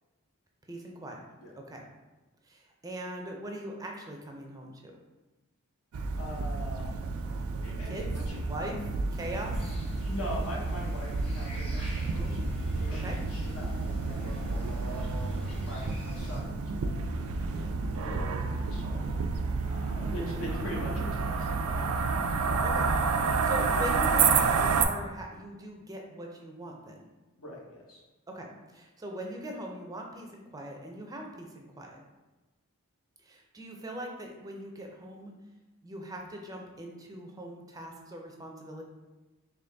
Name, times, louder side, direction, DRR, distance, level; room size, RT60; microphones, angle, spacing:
voice 1, 0.7-1.2 1.6-1.8 2.4-4.9 7.8-8.1 8.5-8.8 9.1-9.6 13.0-13.2 22.6-22.9 23.4-27.0 28.3-32.0 33.2-35.3 35.8-38.8, right 1 dB, 15° right, 1 dB, 0.5 m, -41 dB
sound 1, 5.9-24.8, right 4 dB, 75° right, 0.4 m, -30 dB
voice 2, 6.2-6.9 7.6-8.4 8.7-8.8 10.0-12.4 12.8-15.3 15.6-17.1 17.5-19.0 19.7-21.9 23.2-23.3 27.4-27.6 27.9-28.0, equal, 80° left, -3 dB, 1.1 m, -42 dB
sound 2, 9.1-16.4, equal, 25° left, 0.9 m, -40 dB
3.8 x 3.0 x 3.4 m, 1.1 s
head